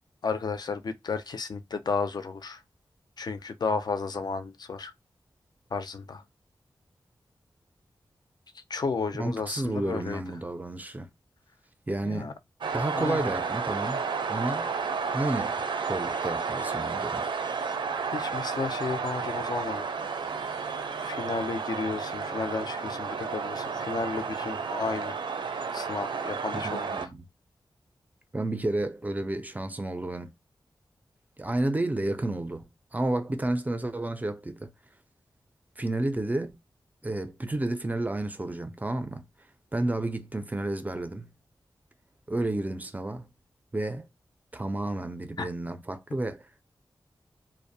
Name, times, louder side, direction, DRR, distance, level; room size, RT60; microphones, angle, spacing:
voice 1, 0.2-2.6 3.2-4.9 5.7-6.2 8.5-10.2 12.0-12.3 12.9-13.3 18.1-19.9 20.9-25.2 25.7-27.0 45.4-45.5, left 4 dB, 55° left, 0.4 m, -33 dB
voice 2, 9.2-11.1 11.9-12.3 12.7-14.0 14.3-14.7 15.1-15.5 15.9-17.3 26.5-27.2 28.3-30.3 31.4-32.6 32.9-34.7 35.8-36.5 37.0-39.2 39.7-41.3 42.3-43.3 43.7-44.1 44.5-46.4, right 2 dB, 20° right, 0.4 m, -31 dB
sound 1, 12.6-27.1, right 5 dB, 75° right, 0.5 m, -32 dB
2.4 x 2.0 x 2.6 m
wide cardioid pair, 115°, 8 cm